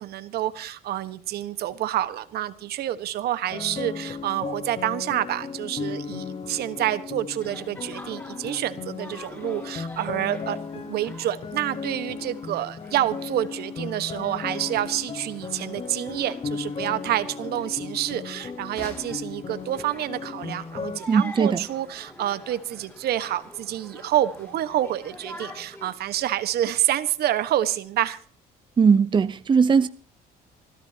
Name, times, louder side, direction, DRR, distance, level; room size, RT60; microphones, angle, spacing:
voice 1, 0.0-28.2, right 12 dB, 70° right, 1.3 m, -28 dB
sound 1, 3.5-21.0, left 5 dB, 35° left, 1.2 m, -36 dB
sound 2, 7.4-25.9, left 1 dB, 15° left, 6.1 m, -46 dB
voice 2, 21.1-21.6 28.8-29.9, right 6 dB, 30° right, 0.7 m, -19 dB
27.0 x 14.5 x 2.8 m
cardioid pair, 110°, 17 cm